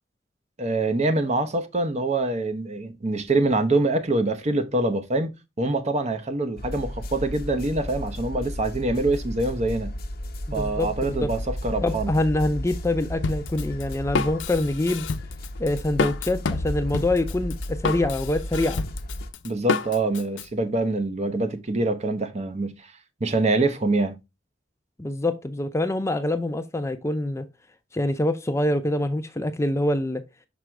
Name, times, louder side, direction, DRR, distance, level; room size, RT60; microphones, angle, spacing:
voice 1, 0.6-5.3 5.6-9.9 10.5-12.1 19.4-22.7 23.2-24.1, right 2 dB, 35° right, 0.8 m, -25 dB
sound 1, 6.6-19.3, equal, 55° left, 1.0 m, -34 dB
voice 2, 10.6-11.3 11.8-15.1 15.6-18.8 25.0-27.5 27.9-30.2, left 1 dB, 15° left, 0.5 m, -25 dB
Drum kit, 13.2-20.5, left 4 dB, 75° left, 0.5 m, -29 dB
6.2 x 5.0 x 3.3 m
head